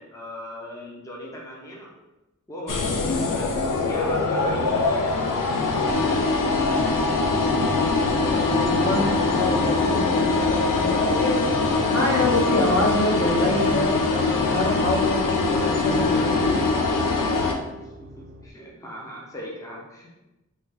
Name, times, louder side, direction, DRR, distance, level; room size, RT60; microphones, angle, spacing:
voice 1, 0.0-1.9 2.5-7.6 17.8-20.1, equal, 10° left, -3 dB, 0.6 m, -39 dB
sound 1, 2.7-17.5, left 3 dB, 85° left, 0.5 m, -22 dB
voice 2, 8.1-11.4 11.9-16.6, left 1 dB, 55° left, -4 dB, 0.9 m, -26 dB
sound 2, 10.5-18.5, right 1 dB, 45° right, 0.4 m, -41 dB
3.3 x 2.3 x 3.3 m, 1.0 s
wide cardioid pair, 75°, 31 cm